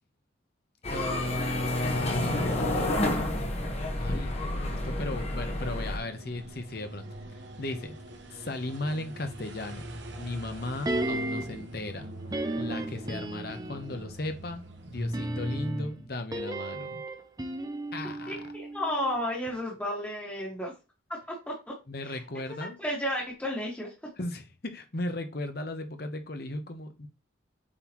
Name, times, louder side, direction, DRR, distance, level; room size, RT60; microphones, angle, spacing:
sound 1, 0.8-6.0, left 1 dB, 35° left, 1.2 m, -30 dB
voice 1, 0.9-3.0 4.0-7.1 7.6-8.0 8.3-9.9 10.2-12.1 12.6-17.0 17.9-18.4 21.9-22.8 24.2-27.1, left 2 dB, 55° left, 7 dB, 1.0 m, -35 dB
sound 2, 2.2-15.7, right 1 dB, 70° right, 1.2 m, -45 dB
sound 3, 10.9-11.7 12.3-13.9 15.0-19.2 19.5-19.6, right 1 dB, 20° right, 0.6 m, -34 dB
voice 2, 18.3-20.7 21.1-21.7 22.0-22.2 22.5-23.9, equal, 10° left, -4 dB, 1.6 m, -33 dB
7.6 x 4.1 x 3.0 m, 0.29 s
head